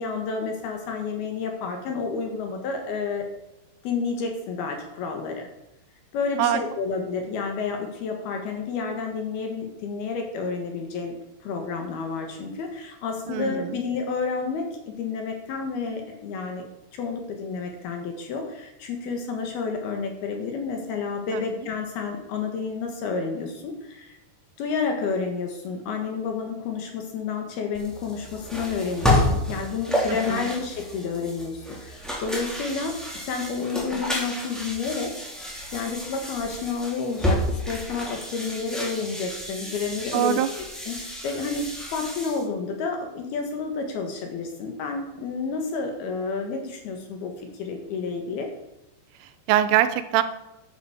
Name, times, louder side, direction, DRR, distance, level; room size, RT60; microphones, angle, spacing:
voice 1, 0.0-3.3 3.8-5.5 6.1-11.2 11.4-16.6 16.9-24.2 24.6-33.0 33.2-35.1 35.7-40.4 40.9-48.5, left 5 dB, 65° left, 3 dB, 3.1 m, -30 dB
voice 2, 13.3-13.8 21.3-21.7 30.1-30.5 40.1-40.5 49.2-50.2, right 12 dB, 90° right, 11 dB, 3.4 m, -24 dB
sound 1, 27.7-42.4, left 1 dB, ahead, 1.7 m, -30 dB
11.0 x 9.2 x 7.2 m, 0.89 s
omnidirectional pair, 5.6 m